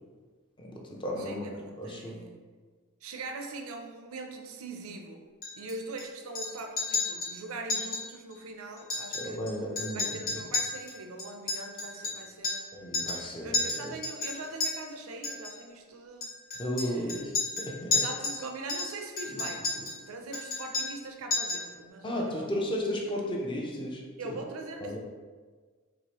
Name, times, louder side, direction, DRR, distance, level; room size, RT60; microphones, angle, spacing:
voice 1, 0.6-1.5 1.8-2.2 9.1-10.4 12.7-13.9 16.6-18.0 19.3-19.4 22.0-24.4 24.8-25.0, equal, 25° left, -1 dB, 0.6 m, -34 dB
voice 2, 1.2-2.4 3.0-5.2 5.6-9.4 9.9-12.7 13.4-16.3 16.8-17.2 18.0-19.7 20.1-22.5 24.2-25.0, right 2 dB, 75° right, 4 dB, 0.5 m, -41 dB
Chink clink, 5.4-6.0 6.3-6.5 6.8-7.3 7.7-8.0 8.3-8.4 8.8-9.5 9.8-12.7 12.9-13.2 13.5-14.7 15.2-15.5 16.2-18.4 18.7-20.0 20.3-21.0 21.3-21.7, left 3 dB, 40° left, 1.2 m, -32 dB
4.7 x 2.9 x 2.9 m, 1.5 s
head